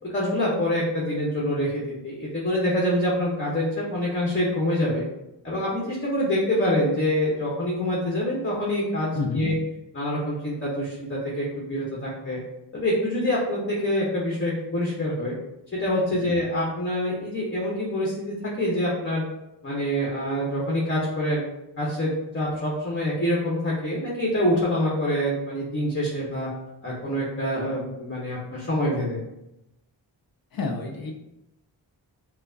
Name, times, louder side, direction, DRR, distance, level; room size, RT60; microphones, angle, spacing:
voice 1, 0.0-5.0 5.4-9.5 9.9-12.4 12.7-15.3 15.7-19.2 19.6-21.4 21.8-26.5 26.8-29.2, left 1 dB, 25° left, -4 dB, 1.0 m, -26 dB
voice 2, 9.1-9.5 16.2-16.4 30.5-31.2, left 3 dB, 50° left, 3 dB, 0.5 m, -29 dB
4.5 x 2.1 x 2.6 m, 0.90 s
cardioid pair, 50°, 46 cm